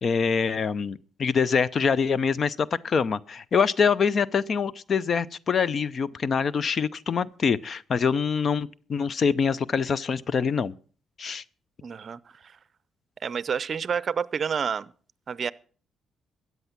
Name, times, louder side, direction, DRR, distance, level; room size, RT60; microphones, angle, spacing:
voice 1, 0.0-10.7 11.2-11.4, left 6 dB, 50° left, 0.6 m, -25 dB
voice 2, 11.8-12.2 13.2-14.9 15.3-15.5, right 7 dB, 45° right, 0.6 m, -28 dB
13.5 x 9.3 x 5.9 m
cardioid pair, 90°, 0 cm